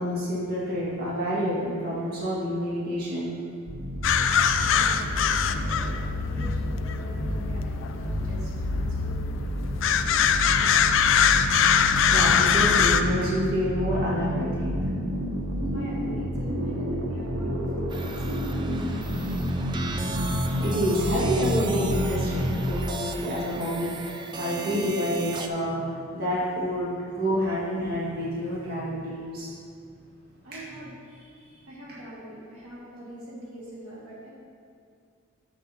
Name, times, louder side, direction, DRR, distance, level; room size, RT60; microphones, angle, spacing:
voice 1, 0.0-3.3 12.1-14.8 19.9-29.5, equal, 45° right, -8 dB, 2.0 m, -28 dB
sound 1, 3.7-22.7, equal, 65° right, 0.9 m, -30 dB
sound 2, 4.0-13.0, left 7 dB, 60° left, 0.3 m, -23 dB
voice 2, 4.7-10.9 15.7-19.6 30.4-34.3, right 1 dB, 85° right, -6 dB, 2.0 m, -44 dB
sound 3, 17.9-25.5, right 3 dB, 20° right, 0.3 m, -36 dB
10.0 x 7.5 x 2.9 m, 2.3 s
head